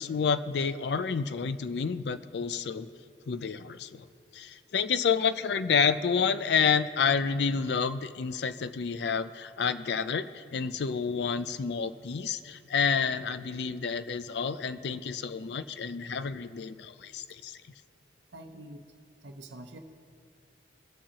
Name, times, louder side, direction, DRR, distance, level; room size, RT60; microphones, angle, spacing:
voice 1, 0.0-2.9 3.3-4.1 4.3-17.6, left 6 dB, 65° left, 13 dB, 0.4 m, -29 dB
voice 2, 18.3-18.8 19.2-19.8, right 1 dB, 85° right, 5 dB, 0.7 m, -45 dB
21.5 x 7.4 x 2.9 m, 2.3 s
head